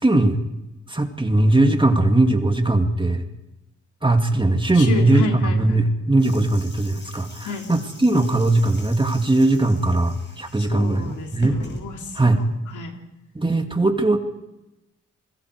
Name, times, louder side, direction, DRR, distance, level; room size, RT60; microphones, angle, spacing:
voice 1, 0.0-0.4 0.9-3.2 4.0-11.6 12.2-12.4 13.3-14.2, right 2 dB, 15° right, 5 dB, 2.3 m, -19 dB
voice 2, 4.8-5.9 7.4-7.7 10.6-13.0, left 3 dB, 85° left, 2 dB, 3.4 m, -31 dB
sound 1, 6.2-12.4, left 2 dB, 35° left, 6.5 m, -42 dB
29.5 x 21.5 x 4.8 m, 0.97 s
cardioid pair, 80°, 30 cm